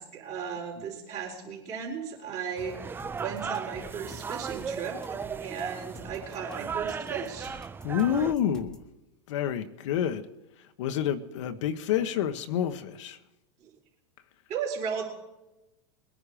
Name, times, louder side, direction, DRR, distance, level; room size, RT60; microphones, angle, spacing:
voice 1, 0.0-7.5 13.6-13.7 14.5-15.0, right 6 dB, 45° right, -6 dB, 4.1 m, -36 dB
sound 1, 2.6-8.3, right 6 dB, 15° right, 0.4 m, -36 dB
sound 2, 3.0-8.9, equal, 5° left, 1.4 m, -50 dB
voice 2, 7.8-8.8 9.3-10.3 10.6-13.2, left 9 dB, 65° left, 8 dB, 1.1 m, -28 dB
21.0 x 10.0 x 5.0 m, 0.96 s
hypercardioid pair, 110°, 16 cm